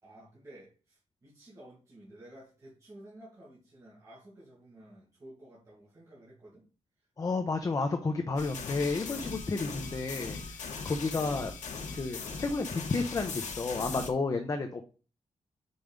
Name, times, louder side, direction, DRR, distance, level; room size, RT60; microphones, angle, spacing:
voice 1, 0.0-6.6, right 1 dB, 25° right, -7 dB, 2.2 m, -53 dB
voice 2, 7.2-11.5 11.9-14.8, left 3 dB, 30° left, 5 dB, 0.6 m, -31 dB
sound 1, 8.4-14.1, left 4 dB, 90° left, 1.2 m, -39 dB
5.5 x 4.6 x 5.1 m, 0.36 s
wide cardioid pair, 175°, 12 cm